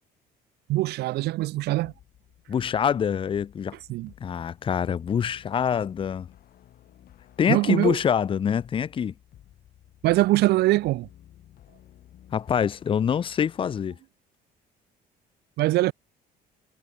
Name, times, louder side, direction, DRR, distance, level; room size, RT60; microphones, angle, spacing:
voice 1, 0.7-1.9 3.9-4.1 7.5-8.0 10.0-11.1 15.6-15.9, right 18 dB, 75° right, 0.6 m, -22 dB
sound 1, 1.8-13.8, left 12 dB, 60° left, 3.6 m, -54 dB
voice 2, 2.5-3.8 4.2-6.3 7.4-9.1 12.3-14.0, left 8 dB, 30° left, 0.5 m, -25 dB
cardioid pair, 110°, 17 cm